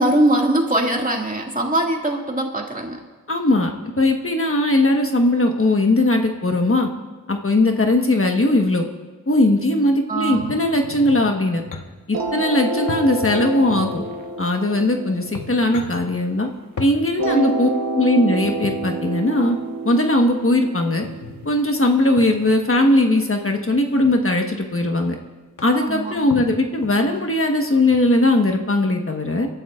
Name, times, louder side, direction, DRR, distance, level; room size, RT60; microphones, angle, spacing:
voice 1, 0.0-3.0 10.1-10.5 17.3-17.5 25.7-26.2, right 1 dB, 25° right, 1 dB, 2.2 m, -21 dB
voice 2, 3.3-3.7 4.0-6.9 7.3-8.8 9.3-11.6 12.1-14.0 14.4-16.5 16.8-17.7 17.9-19.6 19.8-21.0 21.4-25.2 25.6-29.5, left 1 dB, 40° left, 3 dB, 1.4 m, -19 dB
sound 1, 10.3-11.9 12.9-14.1 14.8-14.9 15.2-16.0 16.8-17.0 18.4-18.9 21.0-21.5 22.2-22.5 23.5-24.1 24.9-25.0 25.2-25.3 25.6-25.9 26.3-27.2 27.8-28.0, left 4 dB, 65° left, 1.3 m, -35 dB
sound 2, 12.1-16.5 17.2-22.1, right 2 dB, 85° right, 1.0 m, -29 dB
28.5 x 12.5 x 2.5 m, 1.3 s
cardioid pair, 45°, 33 cm